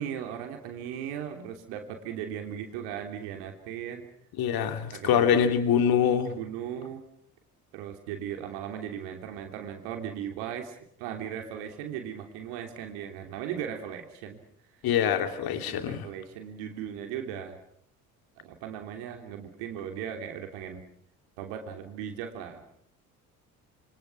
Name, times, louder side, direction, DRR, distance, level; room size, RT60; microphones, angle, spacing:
voice 1, 0.0-4.1 4.9-5.4 6.3-7.0 7.7-14.4 15.5-17.6 18.4-20.8 21.4-22.6, right 9 dB, 65° right, 5 dB, 3.2 m, -37 dB
voice 2, 4.4-6.3 14.8-16.1, left 8 dB, 50° left, 8 dB, 2.8 m, -24 dB
27.5 x 24.5 x 6.0 m, 0.68 s
figure-of-eight pair, 55°, 45 cm